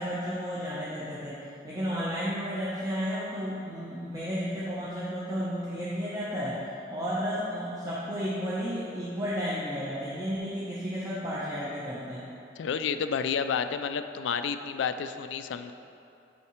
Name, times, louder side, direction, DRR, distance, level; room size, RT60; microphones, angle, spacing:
voice 1, 0.0-1.4 1.6-6.6 6.9-12.2, equal, 20° right, -9 dB, 0.8 m, -32 dB
voice 2, 12.6-15.7, left 6 dB, 85° left, 10 dB, 0.3 m, -30 dB
8.6 x 5.7 x 3.1 m, 2.7 s
head